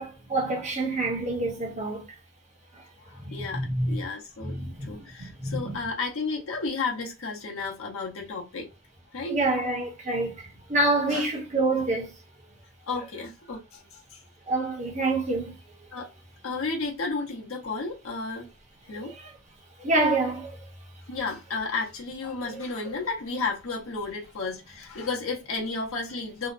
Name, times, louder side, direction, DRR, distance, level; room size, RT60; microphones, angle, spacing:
voice 1, 0.0-2.0 3.2-3.9 4.5-5.6 9.3-12.1 14.5-15.5 19.2-19.3 19.8-20.6, right 2 dB, 35° right, 0.8 m, -27 dB
voice 2, 3.0-8.7 9.1-9.4 11.1-11.3 12.8-14.2 15.9-16.1 16.4-18.5 18.9-19.1 21.1-26.5, left 4 dB, 70° left, 0.8 m, -33 dB
2.7 x 2.1 x 2.5 m
head